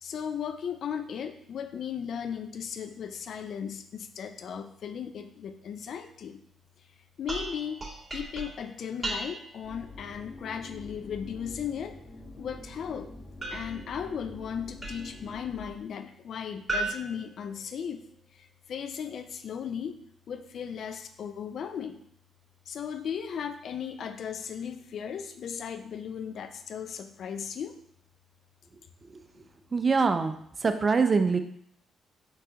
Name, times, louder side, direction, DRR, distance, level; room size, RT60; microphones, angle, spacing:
voice 1, 0.0-6.4 7.2-7.8 8.1-12.0 12.4-13.1 13.5-18.0 18.7-20.0 20.3-22.0 22.7-27.8, left 7 dB, 60° left, 8 dB, 0.4 m, -36 dB
sound 1, 7.3-9.7 13.4-15.3 16.7-18.1, right 2 dB, 25° right, 1.8 m, -37 dB
sound 2, 9.6-15.7, left 2 dB, 35° left, 1.0 m, -45 dB
voice 2, 29.7-31.4, right 4 dB, 40° right, 8 dB, 0.5 m, -24 dB
4.6 x 3.9 x 2.9 m, 0.67 s
hypercardioid pair, 45°, 0 cm